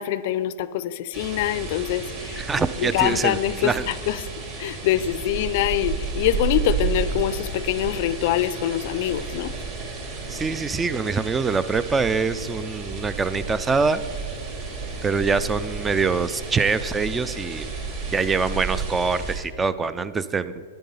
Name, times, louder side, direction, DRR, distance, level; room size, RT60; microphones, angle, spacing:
voice 1, 0.0-2.5 2.8-4.2 4.6-9.5, left 12 dB, 55° left, 16 dB, 0.5 m, -24 dB
sound 1, 1.1-19.4, right 4 dB, 40° right, 3.2 m, -32 dB
voice 2, 2.4-3.9 10.3-14.0 15.0-17.7 18.1-20.6, right 4 dB, 15° right, 15 dB, 0.4 m, -24 dB
9.9 x 9.1 x 5.5 m, 2.1 s
hypercardioid pair, 130°, 0 cm